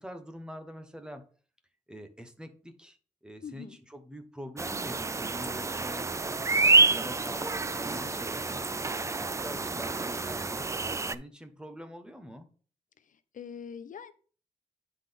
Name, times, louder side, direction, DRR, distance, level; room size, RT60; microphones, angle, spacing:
voice 1, 0.0-1.3 1.9-8.6 9.1-10.6 11.0-12.5, equal, 5° right, 7 dB, 0.9 m, -45 dB
voice 2, 3.4-3.8 13.0-14.1, left 7 dB, 65° left, 12 dB, 0.5 m, -43 dB
sound 1, 4.6-11.1, right 3 dB, 20° right, 0.3 m, -28 dB
9.7 x 3.9 x 3.5 m, 0.41 s
wide cardioid pair, 115°, 14 cm